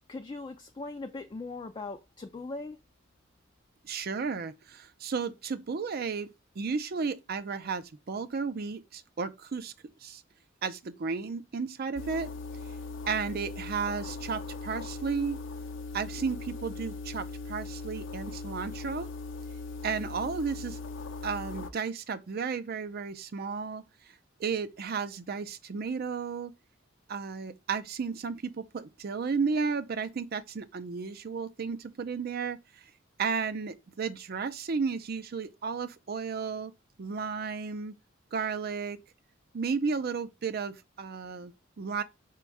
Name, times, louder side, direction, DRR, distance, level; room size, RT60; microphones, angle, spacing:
voice 1, 0.1-2.8, left 3 dB, 25° left, 0.3 m, -39 dB
voice 2, 3.8-9.7 10.0-10.2 10.6-12.3 13.1-15.4 15.9-19.1 19.8-20.8 21.2-23.8 24.4-26.5 27.1-32.8 33.2-36.7 37.0-38.0 38.3-39.0 39.5-42.0, right 5 dB, 50° right, 0.5 m, -33 dB
sound 1, 12.0-21.7, left 3 dB, 70° left, 0.6 m, -39 dB
5.2 x 2.3 x 4.6 m
head